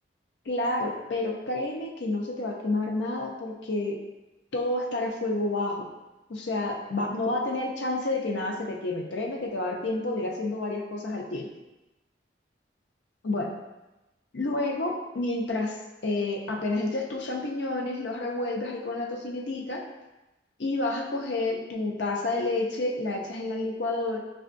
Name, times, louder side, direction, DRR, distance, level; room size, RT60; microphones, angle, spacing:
voice 1, 0.5-4.0 4.5-5.9 6.3-11.5 13.2-13.5 14.3-15.8 16.0-19.8 20.6-24.2, left 2 dB, 75° left, 1 dB, 0.6 m, -29 dB
5.2 x 2.3 x 2.5 m, 1.0 s
head